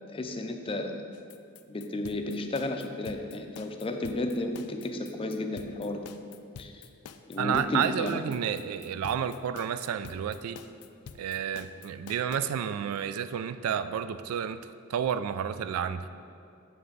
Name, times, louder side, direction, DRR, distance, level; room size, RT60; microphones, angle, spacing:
voice 1, 0.1-1.0 1.7-6.0 6.6-6.8 7.3-8.2, left 2 dB, 25° left, 5 dB, 0.5 m, -33 dB
sound 1, 1.1-12.4, left 6 dB, 90° left, 0.4 m, -47 dB
voice 2, 7.4-10.6 11.2-14.6 14.9-16.1, right 8 dB, 70° right, 13 dB, 0.3 m, -30 dB
7.4 x 5.7 x 3.9 m, 2.4 s
head